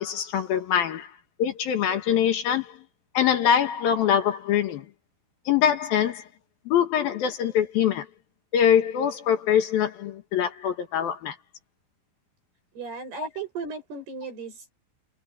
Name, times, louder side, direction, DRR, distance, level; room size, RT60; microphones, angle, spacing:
voice 1, 0.0-2.8 3.1-4.9 5.5-6.2 6.7-8.1 8.5-11.4, left 9 dB, 65° left, 3.0 m, -23 dB
voice 2, 12.7-14.7, right 4 dB, 65° right, 8.8 m, -36 dB
omnidirectional pair, 4.9 m